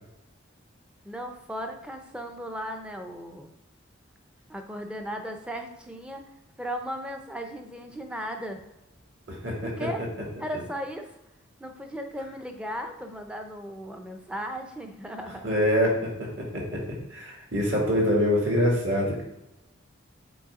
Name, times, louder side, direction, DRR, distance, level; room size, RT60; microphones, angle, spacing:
voice 1, 1.0-3.5 4.5-6.2 6.6-8.6 9.6-10.1 10.4-11.2 11.6-15.5, equal, 5° right, 4 dB, 0.6 m, -36 dB
voice 2, 9.3-9.9 10.5-10.6 15.4-19.2, equal, 55° right, -2 dB, 2.2 m, -25 dB
7.0 x 4.4 x 3.7 m, 0.92 s
head